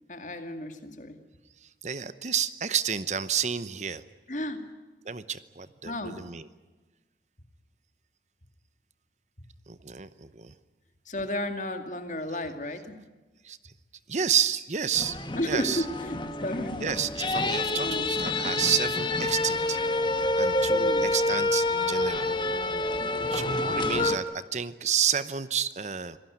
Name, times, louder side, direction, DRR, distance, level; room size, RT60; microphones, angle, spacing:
voice 1, 0.1-1.2 4.3-4.8 5.8-6.3 11.1-13.0 15.3-16.9 17.7-18.2 20.7-21.1, left 1 dB, 45° left, 7 dB, 2.3 m, -33 dB
voice 2, 1.6-4.0 5.0-6.5 9.7-10.5 13.4-13.7 14.1-15.2 15.4-15.8 16.8-19.8 20.4-22.3 23.3-26.2, right 8 dB, 40° right, 14 dB, 0.8 m, -30 dB
sound 1, 14.9-24.2, left 2 dB, 25° left, 1.4 m, -27 dB
26.0 x 17.5 x 9.4 m, 1.2 s
head